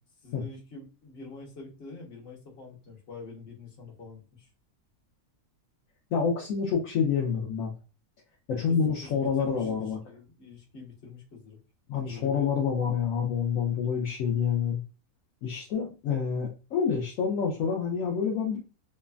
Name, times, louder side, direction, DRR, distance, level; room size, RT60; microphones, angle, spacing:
voice 1, 0.2-4.5 8.7-11.6 12.0-12.5, left 3 dB, 45° left, 0 dB, 1.1 m, -46 dB
voice 2, 6.1-7.7 8.5-10.0 11.9-14.8 15.4-18.6, left 6 dB, 70° left, -1 dB, 0.9 m, -27 dB
3.2 x 2.0 x 2.3 m, 0.31 s
omnidirectional pair, 1.6 m